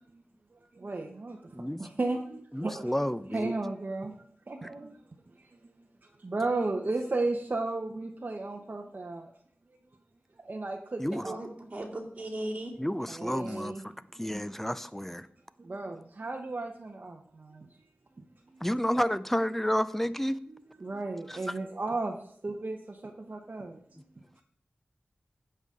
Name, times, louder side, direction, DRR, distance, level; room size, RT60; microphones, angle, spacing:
voice 1, 0.7-2.9 3.3-4.1 4.5-5.0 5.4-5.5 6.2-9.3 10.4-11.4 13.1-13.8 14.4-14.5 15.6-17.7 18.2-18.3 18.5-18.6 20.5-22.2 22.4-23.8 24.1-24.2, right 2 dB, 50° right, 2 dB, 0.8 m, -34 dB
voice 2, 2.5-3.5 11.0-11.3 12.8-13.9 14.2-15.3 18.6-20.4 21.3-21.4, equal, 5° left, 14 dB, 0.5 m, -30 dB
voice 3, 11.2-12.8 13.5-13.6, right 1 dB, 35° right, -5 dB, 2.4 m, -37 dB
15.5 x 5.6 x 3.7 m, 0.62 s
wide cardioid pair, 65°, 4 cm